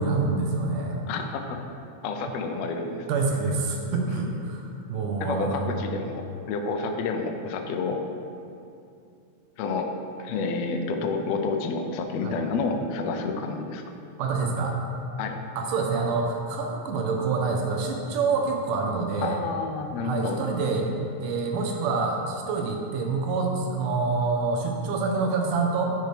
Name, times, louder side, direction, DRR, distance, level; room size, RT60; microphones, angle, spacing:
voice 1, 0.0-1.0 3.1-5.8 12.2-12.5 14.2-14.8 15.6-19.4 20.0-20.9 21.2-25.9, right 4 dB, 80° right, 1 dB, 2.4 m, -26 dB
voice 2, 1.1-1.6 2.0-3.0 4.1-4.2 5.2-6.2 6.5-8.0 9.6-9.9 10.2-13.8 15.2-15.4 19.2-20.4, left 4 dB, 85° left, 4 dB, 1.5 m, -29 dB
10.5 x 6.0 x 3.3 m, 2.6 s
omnidirectional pair, 3.7 m